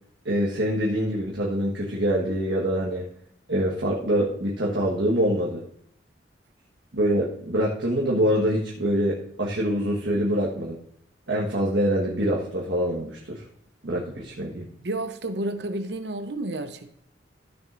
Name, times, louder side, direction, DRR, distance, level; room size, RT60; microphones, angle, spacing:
voice 1, 0.2-3.0 3.5-5.6 6.9-10.8 11.3-13.4 13.8-14.7, equal, 85° right, -3 dB, 1.5 m, -25 dB
voice 2, 14.8-16.9, right 2 dB, 65° right, 8 dB, 0.9 m, -31 dB
14.5 x 6.5 x 2.6 m, 0.69 s
head